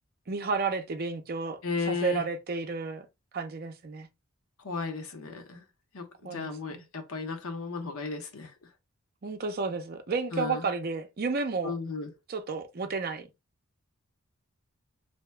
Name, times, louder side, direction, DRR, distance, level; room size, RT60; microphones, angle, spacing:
voice 1, 0.3-3.1 3.3-4.1 6.2-6.8 9.2-11.8 12.3-13.3, right 4 dB, 45° right, 0.5 m, -32 dB
voice 2, 1.6-2.2 4.6-5.6 5.9-8.5 10.3-10.6 11.6-12.1, left 4 dB, 70° left, 0.7 m, -34 dB
2.8 x 2.2 x 3.2 m
head